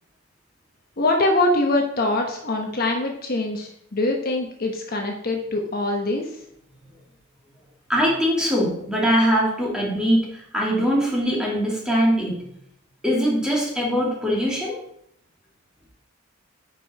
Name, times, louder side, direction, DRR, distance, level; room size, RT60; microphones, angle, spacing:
voice 1, 1.0-6.3, left 2 dB, 50° left, 2 dB, 1.2 m, -23 dB
voice 2, 7.9-12.4 13.0-14.7, equal, 5° right, -4 dB, 2.6 m, -22 dB
10.0 x 5.4 x 4.3 m, 0.70 s
head